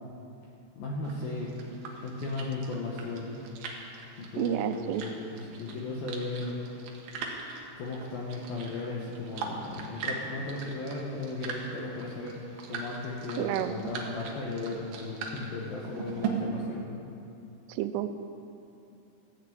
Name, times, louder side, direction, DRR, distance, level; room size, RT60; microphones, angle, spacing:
voice 1, 0.8-1.6 2.0-3.3 4.2-6.6 7.8-12.4 12.7-16.9, left 3 dB, 70° left, -3 dB, 2.4 m, -36 dB
sound 1, 1.0-16.3, right 5 dB, 65° right, 2.5 m, -41 dB
voice 2, 4.4-5.0 13.4-13.7 17.7-18.1, right 12 dB, 85° right, 10 dB, 3.1 m, -30 dB
14.0 x 6.7 x 8.5 m, 2.7 s
omnidirectional pair, 5.6 m